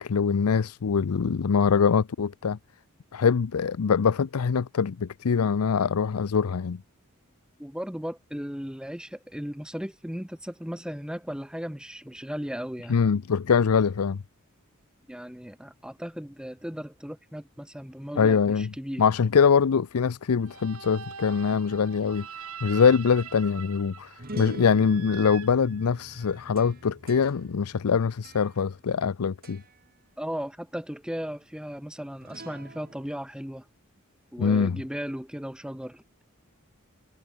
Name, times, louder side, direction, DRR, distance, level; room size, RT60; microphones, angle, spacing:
voice 1, 0.0-2.6 3.1-6.8 12.9-14.2 18.2-18.7 19.0-22.3 22.6-29.6 34.4-34.8, left 6 dB, 90° left, 0.5 m, -23 dB
voice 2, 7.6-13.0 15.1-19.0 30.2-33.6 34.3-36.0, equal, 5° right, 1.2 m, -36 dB
sound 1, 20.4-26.4, right 7 dB, 75° right, 3.0 m, -43 dB
sound 2, 22.8-29.1 29.4-29.8 32.2-33.2, right 1 dB, 45° right, 5.9 m, -45 dB
head